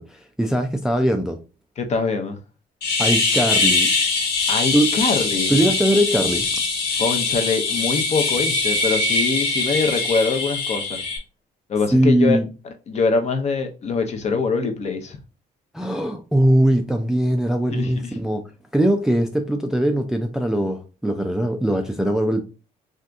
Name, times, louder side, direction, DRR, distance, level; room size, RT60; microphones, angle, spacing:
voice 1, 0.0-1.4 3.0-3.9 4.7-4.9 5.5-6.5 11.9-12.5 15.7-18.4 18.7-22.4, right 1 dB, 5° right, 0.3 m, -20 dB
voice 2, 1.8-2.4 4.5-5.5 7.0-11.0 11.7-12.4 12.9-15.2 17.7-18.1, left 4 dB, 40° left, 0.7 m, -23 dB
sound 1, 2.8-11.2, left 3 dB, 85° left, 1.1 m, -22 dB
2.7 x 2.5 x 3.3 m
cardioid pair, 110°, 17 cm